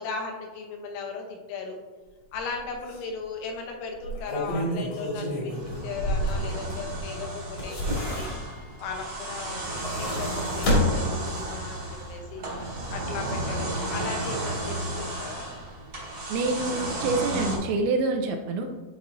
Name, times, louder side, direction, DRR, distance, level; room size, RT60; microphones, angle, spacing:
voice 1, 0.0-1.8 2.3-8.3 8.8-9.7 10.0-15.5, left 5 dB, 80° left, 2 dB, 3.3 m, -37 dB
sound 1, 2.3-2.5 2.9-3.0 3.9-7.0 7.4-8.7 9.5-11.7 12.0-12.1, equal, 55° left, 1.9 m, -29 dB
sound 2, 5.5-17.6, right 1 dB, 55° right, 1.4 m, -33 dB
voice 2, 16.3-18.7, right 3 dB, 85° right, 4 dB, 2.7 m, -26 dB
11.5 x 4.1 x 2.6 m, 1.3 s
omnidirectional pair, 5.5 m